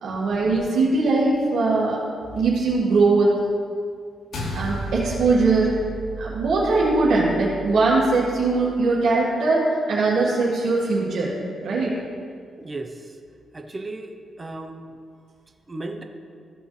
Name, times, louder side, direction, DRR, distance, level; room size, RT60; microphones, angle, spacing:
voice 1, 0.0-2.0 2.3-3.4 4.5-5.8 6.2-11.3 11.6-11.9, right 3 dB, 80° right, -7 dB, 2.0 m, -21 dB
sound 1, 4.3-8.9, right 2 dB, 75° left, 1.3 m, -34 dB
voice 2, 12.6-13.2 13.5-14.8 15.7-16.0, right 2 dB, 30° right, 5 dB, 0.8 m, -35 dB
15.0 x 5.3 x 3.3 m, 2.2 s
cardioid pair, 75°, 0 cm